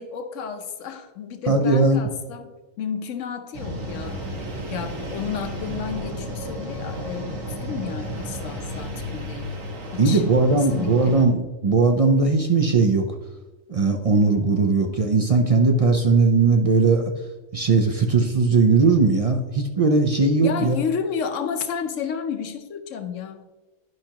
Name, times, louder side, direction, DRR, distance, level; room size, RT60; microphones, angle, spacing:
voice 1, 0.0-2.5 2.8-9.6 9.9-10.2 10.5-11.2 20.4-23.4, left 7 dB, 70° left, 8 dB, 1.1 m, -32 dB
voice 2, 1.5-2.0 10.0-13.0 13.7-17.0 17.5-20.8, right 4 dB, 55° right, 4 dB, 0.4 m, -19 dB
sound 1, 3.5-11.2, equal, 80° right, 1.6 m, -33 dB
10.5 x 5.7 x 2.9 m, 1.2 s
omnidirectional pair, 1.4 m